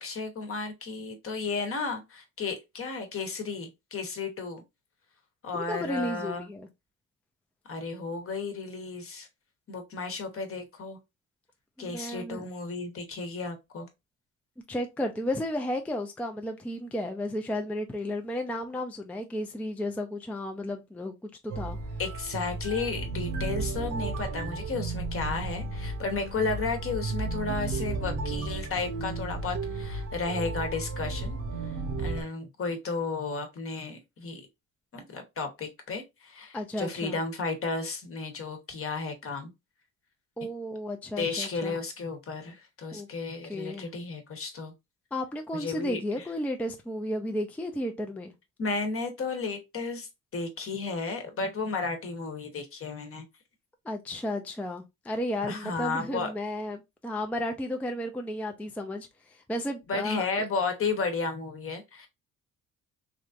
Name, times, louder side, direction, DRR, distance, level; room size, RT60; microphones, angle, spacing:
voice 1, 0.0-4.6 5.4-6.5 7.7-9.3 9.7-11.0 11.8-13.9 22.0-31.4 31.6-34.4 34.9-39.5 41.2-44.7 45.5-46.2 48.6-53.2 55.5-56.3 59.9-62.1, left 4 dB, 45° left, 1.0 m, -33 dB
voice 2, 5.5-6.7 11.8-12.5 14.7-21.8 36.5-37.2 40.4-41.8 42.9-43.1 43.4-43.9 45.1-48.3 53.8-60.4, left 1 dB, 5° left, 0.4 m, -33 dB
sound 1, 21.5-32.2, right 3 dB, 80° right, 0.9 m, -33 dB
3.1 x 2.5 x 2.5 m
cardioid pair, 90°, 30 cm